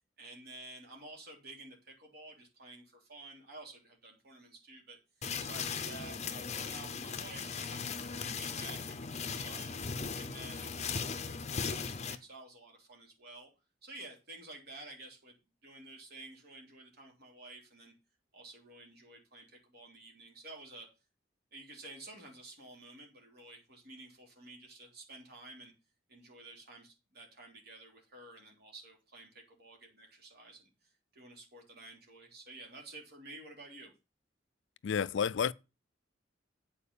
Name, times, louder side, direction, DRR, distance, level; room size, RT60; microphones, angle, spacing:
voice 1, 0.2-5.0 5.4-9.8 10.1-13.5 13.8-15.4 15.6-17.9 18.3-20.9 21.5-25.7 26.1-30.7 31.1-33.9, right 2 dB, 55° right, 3.4 m, -51 dB
sound 1, 5.2-12.2, left 5 dB, 35° left, 0.7 m, -38 dB
voice 2, 34.8-35.5, left 7 dB, 65° left, 0.4 m, -30 dB
8.4 x 5.0 x 7.0 m
head